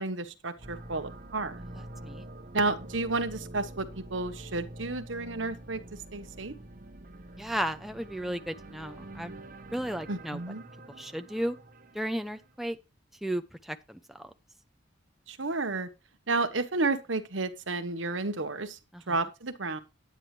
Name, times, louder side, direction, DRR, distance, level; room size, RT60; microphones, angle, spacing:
voice 1, 0.0-1.6 2.5-5.8 6.1-6.5 10.1-10.7 15.3-15.9 16.3-18.8 19.1-19.8, right 3 dB, 75° right, 1.2 m, -31 dB
sound 1, 0.6-12.5, right 1 dB, 45° right, 1.2 m, -46 dB
voice 2, 1.7-2.2 7.4-9.3 9.7-10.4 11.0-11.6 11.9-12.8 13.2-14.2 18.9-19.1, equal, ahead, 0.7 m, -34 dB
10.5 x 9.7 x 3.3 m
head